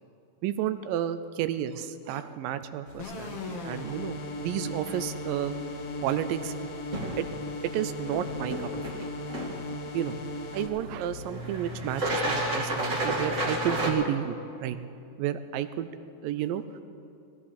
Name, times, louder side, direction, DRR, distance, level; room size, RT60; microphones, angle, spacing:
voice 1, 0.4-5.6 6.0-6.7 7.2-7.3 7.6-9.1 9.9-10.2 10.5-14.8 15.2-15.9 16.2-16.6, right 11 dB, 85° right, 12 dB, 2.3 m, -31 dB
sound 1, 2.9-13.9, right 1 dB, 30° right, 1.4 m, -34 dB
sound 2, 3.0-10.7, left 2 dB, 60° left, 1.9 m, -37 dB
19.5 x 15.0 x 4.3 m, 2.6 s
omnidirectional pair, 4.0 m